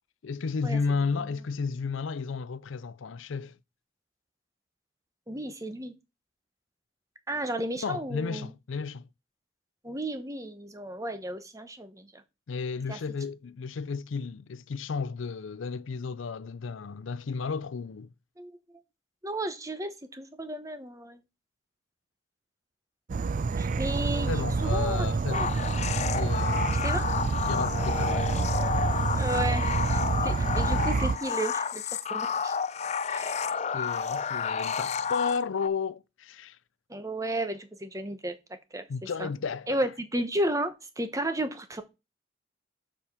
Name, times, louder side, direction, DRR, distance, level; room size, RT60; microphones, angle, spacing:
voice 1, 0.2-3.6 7.8-9.1 12.5-18.1 24.3-25.5 26.1-26.7 27.5-28.4 33.7-36.6 38.9-39.9, left 5 dB, 90° left, 0.5 m, -33 dB
voice 2, 5.3-5.9 7.3-8.5 9.8-12.2 12.9-13.0 18.4-18.5 19.2-21.2 23.6-24.3 24.6-25.6 26.8-27.1 29.2-32.5 33.1-33.6 36.9-38.4 38.7-39.3 39.7-41.8, right 1 dB, 15° right, 1.0 m, -33 dB
Insect / Frog, 23.1-31.2, right 4 dB, 40° right, 0.3 m, -28 dB
sound 1, 25.3-35.7, left 6 dB, 35° left, 0.4 m, -30 dB
7.4 x 4.9 x 5.6 m
head